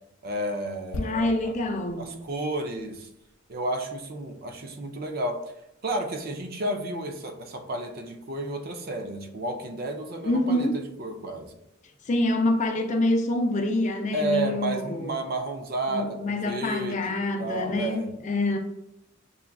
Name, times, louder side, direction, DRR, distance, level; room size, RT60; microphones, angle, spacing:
voice 1, 0.2-1.5 2.0-3.1 3.5-5.4 5.8-11.5 14.1-18.1, right 1 dB, 50° right, 0.5 m, -32 dB
sound 1, 0.9-4.6 4.8-5.0, left 2 dB, 85° left, 0.5 m, -41 dB
voice 2, 1.0-2.1 10.2-10.8 12.1-15.1 15.9-18.6, left 1 dB, 35° left, 0.5 m, -26 dB
6.7 x 2.3 x 2.3 m
head